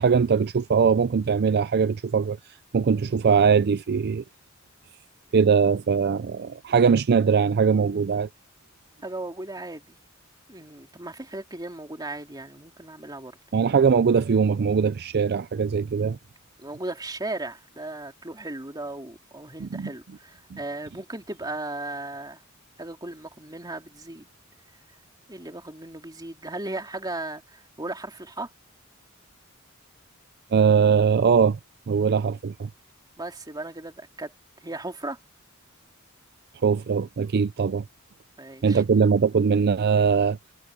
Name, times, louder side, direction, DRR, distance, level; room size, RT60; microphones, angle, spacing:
voice 1, 0.0-2.4 2.7-4.2 5.3-8.3 13.5-16.2 19.6-19.9 20.5-20.6 30.5-31.6 31.9-32.7 36.6-37.8 38.6-40.4, right 6 dB, 50° right, 0.4 m, -21 dB
voice 2, 9.0-10.0 10.5-13.4 16.6-22.4 22.8-24.3 25.3-28.5 33.2-34.3 34.6-35.2 38.4-38.8, right 2 dB, 20° right, 2.9 m, -36 dB
head